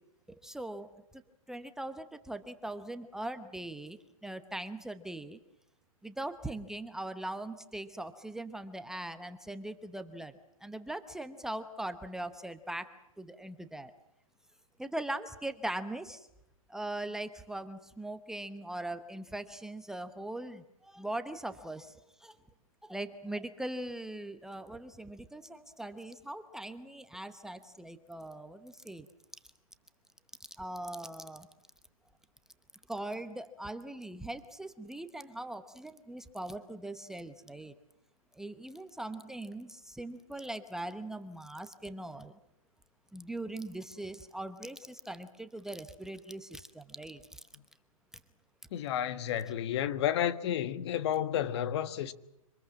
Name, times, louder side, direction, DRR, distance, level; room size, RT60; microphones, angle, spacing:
voice 1, 0.3-0.9 1.5-5.4 6.0-10.3 10.6-12.9 13.2-13.9 14.8-16.3 16.7-22.4 22.8-29.1 30.6-31.5 32.9-37.7 38.3-42.4 43.1-47.4, right 1 dB, 5° right, 0.9 m, -41 dB
voice 2, 48.7-52.1, left 10 dB, 50° left, 1.4 m, -31 dB
25.5 x 20.5 x 7.4 m
hypercardioid pair, 150°, 18 cm